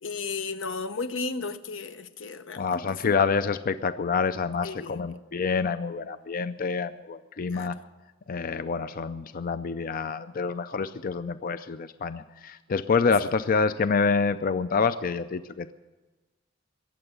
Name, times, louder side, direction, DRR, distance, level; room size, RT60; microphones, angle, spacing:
voice 1, 0.0-3.1 4.6-5.1 7.5-7.7, left 4 dB, 85° left, 10 dB, 0.9 m, -34 dB
voice 2, 2.6-7.8 8.3-15.7, left 5 dB, 45° left, 12 dB, 0.4 m, -27 dB
21.5 x 7.9 x 8.0 m, 1.2 s
head